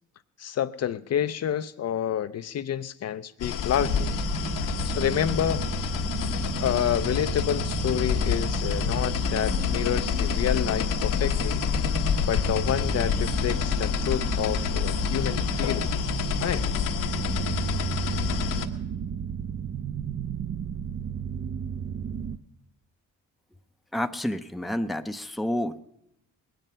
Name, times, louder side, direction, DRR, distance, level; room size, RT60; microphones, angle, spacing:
voice 1, 0.4-4.1 4.8-5.6 6.4-11.6 12.3-16.1 16.4-16.7, left 10 dB, 50° left, 0.6 m, -29 dB
sound 1, 3.4-18.7, left 8 dB, 70° left, 1.1 m, -28 dB
sound 2, 3.8-22.4, right 7 dB, 40° right, 0.7 m, -33 dB
voice 2, 23.9-25.8, left 1 dB, ahead, 0.6 m, -29 dB
20.0 x 9.3 x 5.5 m
supercardioid pair, 65°, 33 cm